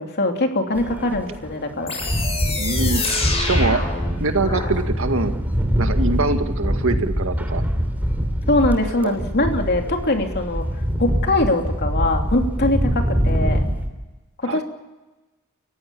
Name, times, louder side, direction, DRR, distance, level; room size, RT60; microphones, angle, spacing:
voice 1, 0.0-1.9 8.5-10.7 11.0-13.6 14.4-14.6, left 2 dB, 50° left, 3 dB, 3.0 m, -22 dB
sound 1, 0.7-13.9, equal, 10° right, 3.1 m, -24 dB
sound 2, 1.9-4.7, left 3 dB, 30° left, 7.4 m, -27 dB
voice 2, 2.6-3.8 4.2-5.3 5.8-7.6 9.0-9.1 14.4-14.6, right 3 dB, 65° right, 7 dB, 2.0 m, -24 dB
30.0 x 16.0 x 7.0 m, 1.1 s
head